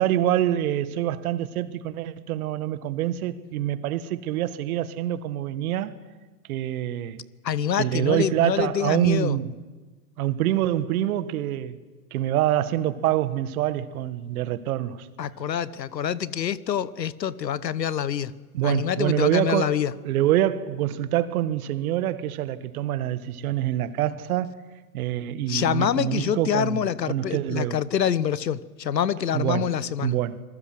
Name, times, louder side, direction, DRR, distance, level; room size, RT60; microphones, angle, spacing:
voice 1, 0.0-5.9 6.5-7.2 7.8-9.5 10.2-11.8 12.1-15.1 18.5-19.8 20.0-24.6 24.9-27.8 29.3-30.4, right 12 dB, 60° right, 1.7 m, -26 dB
voice 2, 7.4-9.4 15.2-18.3 18.6-19.9 25.5-30.1, left 9 dB, 85° left, 1.1 m, -26 dB
26.0 x 20.5 x 7.8 m
hypercardioid pair, 105°, 49 cm